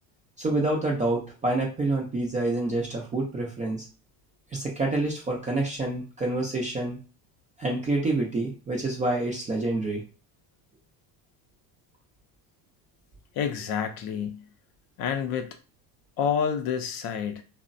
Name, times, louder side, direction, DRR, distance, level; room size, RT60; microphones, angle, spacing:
voice 1, 0.4-3.8 4.5-7.0 7.6-10.0, right 2 dB, 15° right, -2 dB, 0.4 m, -27 dB
voice 2, 13.4-14.5 15.0-15.6 16.2-17.4, left 7 dB, 50° left, 6 dB, 0.5 m, -28 dB
3.1 x 2.0 x 2.5 m, 0.36 s
supercardioid pair, 130°, 50 cm